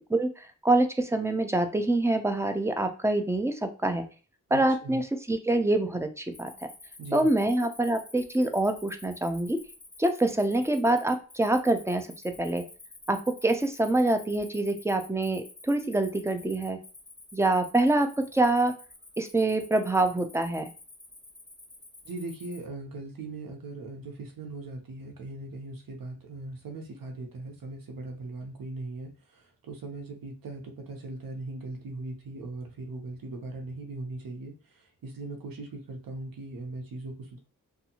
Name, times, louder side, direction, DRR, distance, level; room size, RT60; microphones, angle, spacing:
voice 1, 0.1-4.0 4.5-5.0 5.3-6.5 7.1-9.6 10.0-12.6 13.1-16.8 17.3-18.7 19.2-20.7, right 2 dB, 10° right, 7 dB, 0.4 m, -25 dB
voice 2, 4.5-5.0 7.0-7.3 22.0-37.4, right 2 dB, 85° right, 2 dB, 0.8 m, -39 dB
Cricket, 6.3-22.6, left 2 dB, 15° left, 1.0 m, -50 dB
2.6 x 2.3 x 2.8 m, 0.37 s
cardioid pair, 65°, 33 cm